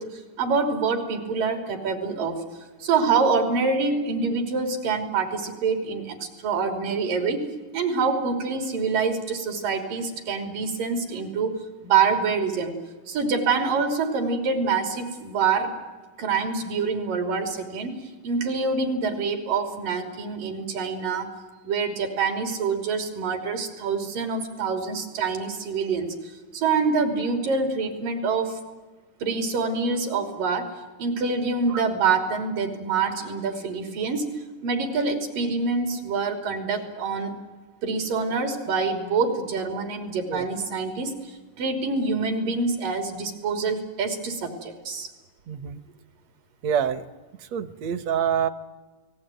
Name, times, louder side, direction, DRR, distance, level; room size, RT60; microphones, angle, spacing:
voice 1, 0.0-2.4 2.8-7.4 7.7-11.6 11.8-12.7 13.1-15.7 16.2-17.9 18.2-21.3 21.6-26.1 26.5-28.6 29.2-30.7 31.0-34.3 34.6-37.4 37.8-45.1, right 4 dB, 80° right, 5 dB, 4.9 m, -26 dB
voice 2, 45.5-45.8 46.6-47.0 47.5-48.5, right 8 dB, 65° right, 12 dB, 2.1 m, -26 dB
29.0 x 19.5 x 9.2 m, 1.3 s
omnidirectional pair, 3.8 m